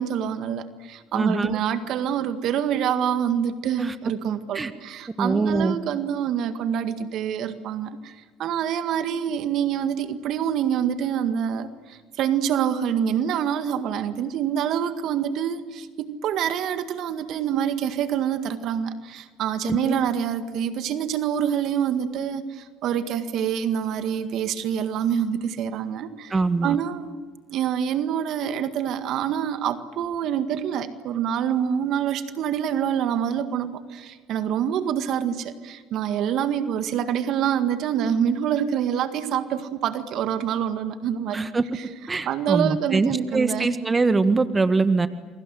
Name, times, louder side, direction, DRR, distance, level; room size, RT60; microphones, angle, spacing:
voice 1, 0.0-26.4 26.6-27.2 27.5-41.4 42.3-43.7, right 9 dB, 65° right, 10 dB, 1.8 m, -26 dB
voice 2, 1.1-1.6 3.8-3.9 4.5-4.7 5.2-5.7 19.6-20.0 26.3-26.8 41.3-41.6 42.1-45.1, right 3 dB, 25° right, 11 dB, 1.6 m, -23 dB
29.0 x 23.0 x 7.8 m, 1.4 s
hypercardioid pair, 65°, 0 cm